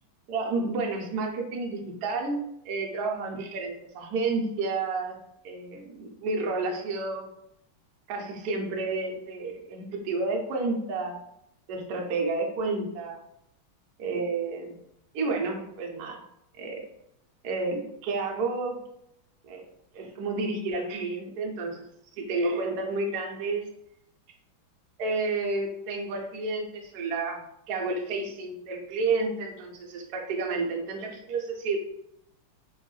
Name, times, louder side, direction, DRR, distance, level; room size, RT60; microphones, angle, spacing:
voice 1, 0.3-2.4 2.6-5.2 5.4-7.3 8.1-11.2 11.7-13.2 14.0-14.8 15.1-16.2 16.5-16.8 17.4-18.8 19.5-19.6 19.9-21.8 22.2-23.6 25.0-27.4 27.7-31.8, right 3 dB, 90° right, 1 dB, 0.8 m, -30 dB
3.4 x 2.3 x 3.1 m, 0.77 s
omnidirectional pair, 2.4 m